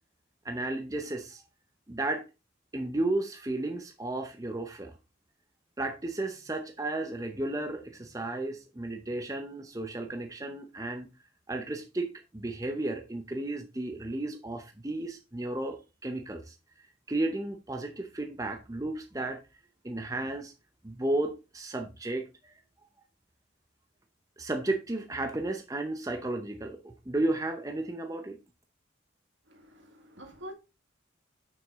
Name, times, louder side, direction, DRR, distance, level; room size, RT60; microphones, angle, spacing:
voice 1, 0.4-1.4 1.9-2.2 2.7-5.0 5.8-11.1 11.5-16.5 17.1-19.4 19.8-20.5 20.8-22.5 24.4-28.4, right 2 dB, 15° right, 0.6 m, -33 dB
voice 2, 29.5-30.5, equal, 65° right, 1.9 m, -46 dB
6.9 x 6.2 x 3.5 m
head